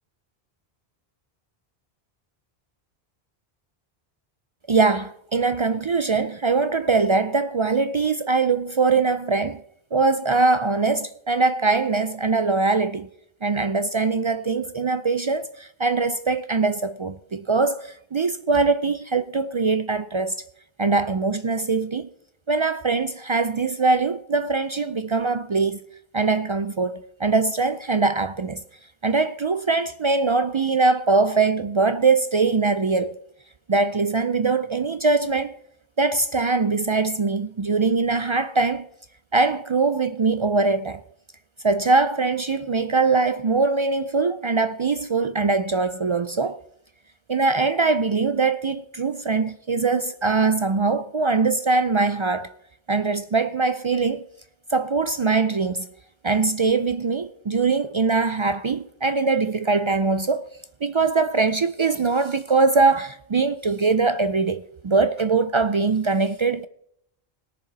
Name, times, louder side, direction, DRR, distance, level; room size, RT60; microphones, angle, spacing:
voice 1, 4.7-9.6 9.9-13.1 13.4-20.3 20.8-22.1 22.5-25.8 26.1-28.6 29.0-33.2 33.7-35.6 36.0-38.9 39.3-41.0 41.6-46.6 47.3-52.5 52.9-54.2 54.7-55.9 56.2-60.5 60.8-66.7, right 4 dB, 50° right, 0.3 m, -22 dB
20.5 x 7.0 x 4.0 m
omnidirectional pair, 1.0 m